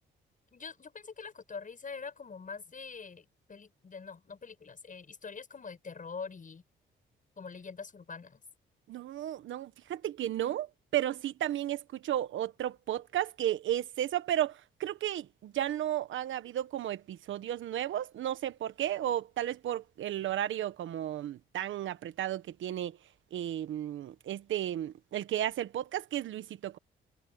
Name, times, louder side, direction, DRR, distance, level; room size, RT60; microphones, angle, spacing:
voice 1, 0.5-6.6 7.4-8.4, left 5 dB, 40° left, 8.0 m, -44 dB
voice 2, 8.9-23.0 23.3-26.8, right 12 dB, 80° right, 1.3 m, -33 dB
cardioid pair, 75°, 20 cm